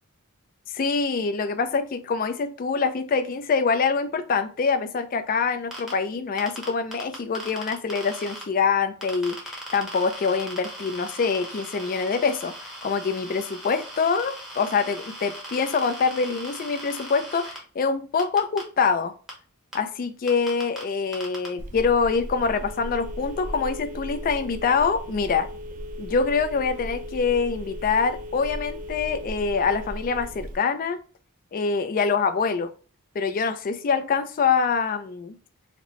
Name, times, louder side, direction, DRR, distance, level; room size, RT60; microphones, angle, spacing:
voice 1, 0.7-19.1 19.7-25.5 26.0-31.0 31.5-32.7 33.2-35.4, left 5 dB, 40° left, 0.3 m, -25 dB
sound 1, 5.7-5.9 6.4-8.4 9.0-17.6 18.2-18.6 19.3-19.4 19.7-19.8 20.3-20.8 21.1-21.5, equal, ahead, 0.8 m, -39 dB
Telephone, 21.6-30.6, equal, 35° right, 0.3 m, -36 dB
4.2 x 2.0 x 3.0 m
head